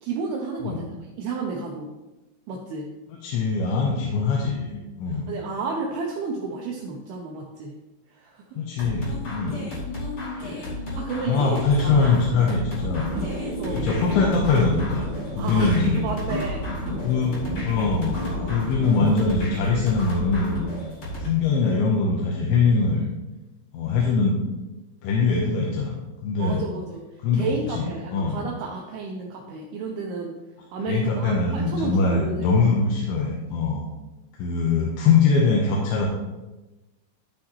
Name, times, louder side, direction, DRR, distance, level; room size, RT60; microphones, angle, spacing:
voice 1, 0.0-1.9 2.5-2.9 5.3-7.7 8.1-8.4 10.4-12.1 13.6-13.9 15.4-16.6 26.4-27.0 27.3-30.4 30.7-32.5, right 4 dB, 80° right, -1 dB, 2.2 m, -32 dB
voice 2, 3.1-5.3 8.6-9.6 11.2-13.0 13.8-15.1 15.4-16.0 17.0-17.4 17.6-18.2 18.5-20.7 21.2-23.0 23.7-24.4 25.0-26.0 26.2-26.6 27.2-28.5 30.9-33.9 34.4-36.1, left 4 dB, 80° left, -2 dB, 3.2 m, -22 dB
sound 1, 8.8-21.3, left 1 dB, 40° left, 3.1 m, -33 dB
sound 2, 13.0-19.5, left 1 dB, 65° right, 2.1 m, -32 dB
12.5 x 6.3 x 3.1 m, 1.1 s
omnidirectional pair, 5.6 m